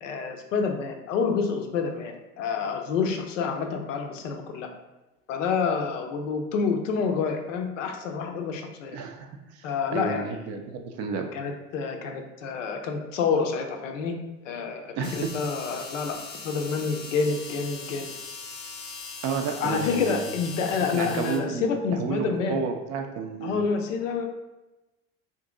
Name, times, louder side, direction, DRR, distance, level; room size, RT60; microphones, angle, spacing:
voice 1, 0.0-4.7 5.3-9.0 9.6-10.3 11.3-14.2 14.4-16.2 16.4-18.1 19.6-22.6 23.4-24.2, left 5 dB, 70° left, 4 dB, 0.6 m, -28 dB
voice 2, 8.9-11.3 15.0-15.3 19.2-20.3 20.9-21.7 21.9-23.6, right 5 dB, 40° right, 5 dB, 0.4 m, -31 dB
sound 1, 15.0-21.4, left 4 dB, 25° left, 0.6 m, -40 dB
2.7 x 2.5 x 3.5 m, 1.0 s
figure-of-eight pair, 65°, 39 cm